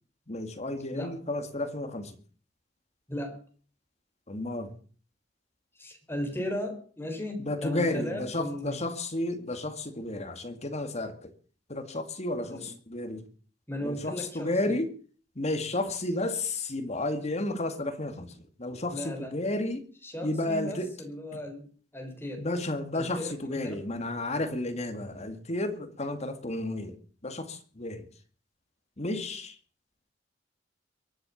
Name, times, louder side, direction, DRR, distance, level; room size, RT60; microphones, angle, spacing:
voice 1, 0.3-2.2 4.3-4.7 7.4-11.3 11.7-13.2 13.8-14.9 15.4-18.3 18.6-19.8 20.2-20.9 22.4-27.0 27.2-28.0 29.0-29.6, left 2 dB, 35° left, 2.2 m, -32 dB
voice 2, 3.1-3.4 5.7-8.8 12.5-12.7 13.7-14.8 18.9-19.3 20.0-22.5 22.9-23.8, left 1 dB, 15° left, 4.1 m, -36 dB
23.0 x 8.3 x 7.2 m
head